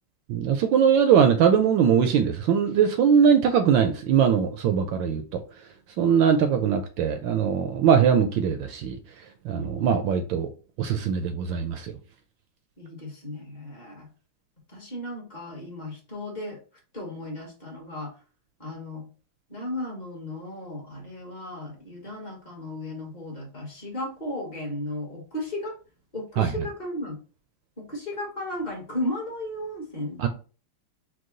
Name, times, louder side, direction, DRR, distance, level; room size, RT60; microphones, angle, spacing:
voice 1, 0.3-5.4 6.0-9.0 9.4-10.5 10.8-11.9 26.4-26.5 30.2-30.3, right 7 dB, 75° right, 1.1 m, -21 dB
voice 2, 6.0-6.6 9.5-10.0 12.8-14.1 14.7-16.6 16.9-18.1 18.6-19.1 19.5-25.8 26.1-27.1 27.8-30.2, left 1 dB, 25° left, 1.0 m, -35 dB
4.7 x 2.3 x 3.8 m
omnidirectional pair, 2.4 m